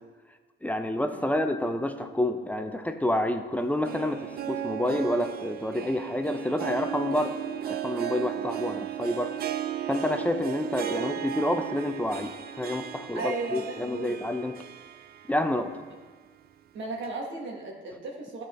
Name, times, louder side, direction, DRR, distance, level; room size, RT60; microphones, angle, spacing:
voice 1, 0.6-7.3 7.7-9.3 9.9-14.5 15.3-15.7, left 1 dB, 10° left, 7 dB, 0.5 m, -28 dB
Harp, 3.6-15.7 16.1-16.2 17.0-17.1, right 10 dB, 50° right, 0.4 m, -35 dB
voice 2, 13.1-14.2 16.7-18.4, right 3 dB, 70° right, -2 dB, 1.4 m, -35 dB
11.5 x 4.2 x 3.1 m, 1.4 s
cardioid pair, 90°, 20 cm